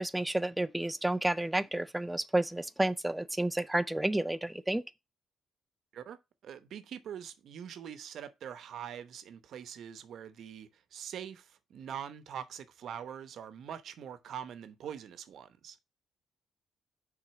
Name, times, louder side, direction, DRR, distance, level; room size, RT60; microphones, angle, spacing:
voice 1, 0.0-4.8, right 1 dB, 5° right, 0.4 m, -31 dB
voice 2, 5.9-15.8, right 9 dB, 70° right, 0.8 m, -44 dB
6.2 x 3.8 x 5.8 m
cardioid pair, 90°, 0 cm